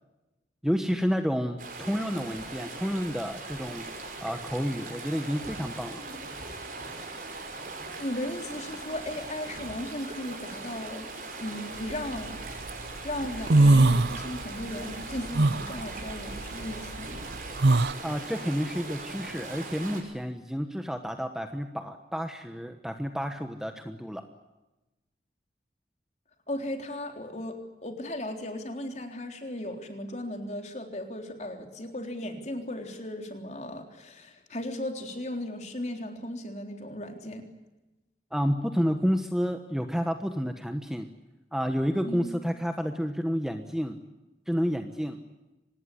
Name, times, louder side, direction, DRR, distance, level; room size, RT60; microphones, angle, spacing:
voice 1, 0.6-3.9 4.2-6.0 18.0-24.2 38.3-41.1 41.5-44.0 44.5-45.2, equal, 5° right, 6 dB, 1.2 m, -30 dB
sound 1, 1.6-20.0, right 3 dB, 45° right, 5.7 m, -40 dB
Thunder, 5.4-13.5, right 2 dB, 90° right, 3.3 m, -51 dB
voice 2, 8.0-11.1 11.4-12.4 13.0-17.2 26.5-37.4 42.0-42.3, left 1 dB, 40° left, 4 dB, 3.8 m, -36 dB
sound 2, 11.9-12.7 13.1-14.6 14.9-17.9, right 2 dB, 70° right, 0.8 m, -22 dB
25.5 x 19.5 x 9.8 m, 1.0 s
head